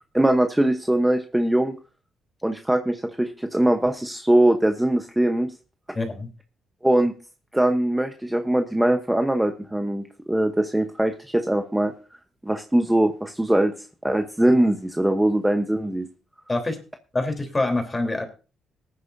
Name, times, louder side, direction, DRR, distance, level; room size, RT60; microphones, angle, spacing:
voice 1, 0.1-1.8 2.4-5.5 6.8-7.1 7.5-11.9 12.4-13.7 14.0-16.1, right 1 dB, 10° right, 6 dB, 0.9 m, -21 dB
voice 2, 5.9-6.3 16.5-16.8 17.1-18.2, left 2 dB, 20° left, 5 dB, 3.5 m, -25 dB
19.0 x 9.9 x 2.7 m, 0.34 s
cardioid pair, 90°, 0 cm